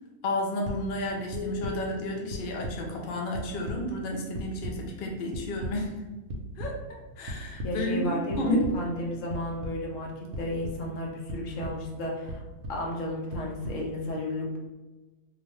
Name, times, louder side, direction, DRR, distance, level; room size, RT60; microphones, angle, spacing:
voice 1, 0.2-5.9 6.6-6.8 7.2-8.7, left 1 dB, 85° left, 0 dB, 0.4 m, -31 dB
sound 1, 0.6-0.8 1.3-1.7 2.3-2.7 3.1-3.8 4.3-4.7 5.3-5.7 6.3-6.7 7.3-7.7 8.3-8.7 9.3-9.7 10.3-10.7 11.3-11.7 12.3-12.7 13.3-13.7, right 1 dB, 70° right, 0.9 m, -35 dB
sound 2, 1.3-3.9, left 12 dB, 20° left, 1.0 m, -42 dB
voice 2, 7.2-12.4 12.7-14.6, left 1 dB, 65° left, -1 dB, 0.9 m, -33 dB
2.9 x 2.1 x 3.0 m, 1.2 s
omnidirectional pair, 1.6 m